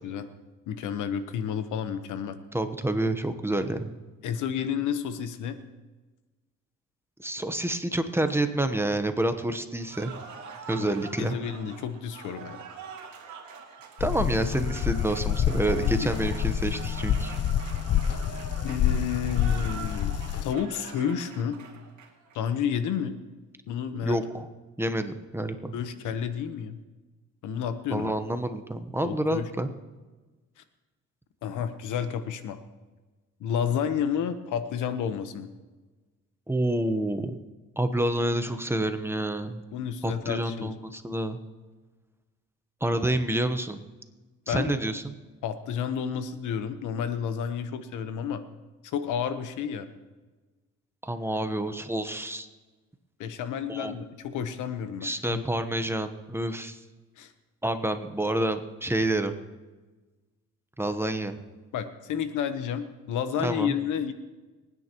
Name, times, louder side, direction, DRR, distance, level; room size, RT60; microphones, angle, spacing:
voice 1, 0.7-2.4 4.2-5.6 10.7-10.9 11.2-12.6 16.0-16.3 18.6-21.6 22.3-23.2 23.7-24.2 25.7-26.8 27.4-28.1 29.0-29.7 31.4-32.6 33.4-35.5 39.7-40.7 44.5-44.7 45.4-48.4 48.8-49.9 53.2-55.4 57.2-57.3 61.7-64.1, left 8 dB, 85° left, 10 dB, 1.1 m, -31 dB
voice 2, 2.5-4.0 7.2-10.1 10.7-11.4 14.0-17.4 24.0-24.5 24.8-25.7 27.9-29.7 36.5-37.4 37.8-39.6 40.0-41.4 42.8-43.8 44.5-45.0 51.0-52.5 53.7-53.9 55.0-56.8 57.6-59.3 60.8-61.4 63.4-63.7, right 1 dB, 10° right, 8 dB, 1.0 m, -28 dB
Cheering / Applause, 9.8-22.4, right 6 dB, 70° right, 2.4 m, -44 dB
sound 1, 14.0-20.5, left 9 dB, 55° left, 0.6 m, -27 dB
25.0 x 9.8 x 3.0 m, 1.2 s
cardioid pair, 90°, 30 cm